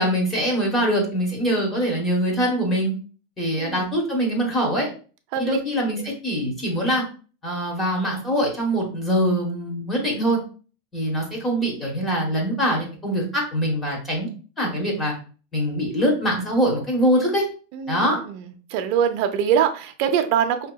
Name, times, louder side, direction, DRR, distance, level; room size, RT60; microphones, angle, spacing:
voice 1, 0.0-2.9 3.4-4.9 5.4-7.0 7.4-10.4 10.9-14.3 14.6-15.1 15.5-17.4 17.9-18.2, equal, 15° left, -1 dB, 1.0 m, -23 dB
voice 2, 3.6-4.0 5.3-5.6 17.7-18.4 18.7-20.7, right 8 dB, 50° right, 7 dB, 0.5 m, -23 dB
5.1 x 2.8 x 2.2 m, 0.38 s
supercardioid pair, 160°, 0 cm